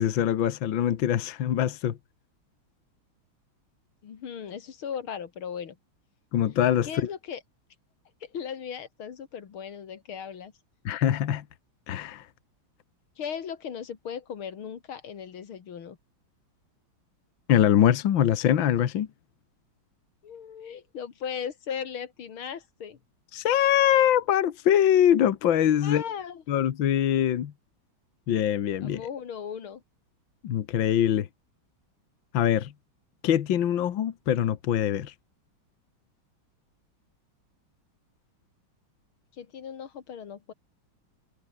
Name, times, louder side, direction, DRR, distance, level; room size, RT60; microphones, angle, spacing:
voice 1, 0.0-2.0 6.3-6.9 10.9-11.4 11.9-12.3 17.5-19.1 23.3-26.0 26.5-27.5 28.3-29.0 30.4-31.3 32.3-32.7 33.2-35.1, left 10 dB, 70° left, 1.9 m, -23 dB
voice 2, 4.0-5.8 6.8-7.4 8.2-10.5 13.2-16.0 20.2-23.0 25.8-26.4 28.8-29.8 39.4-40.5, left 7 dB, 90° left, 2.7 m, -37 dB
omnidirectional pair, 2.3 m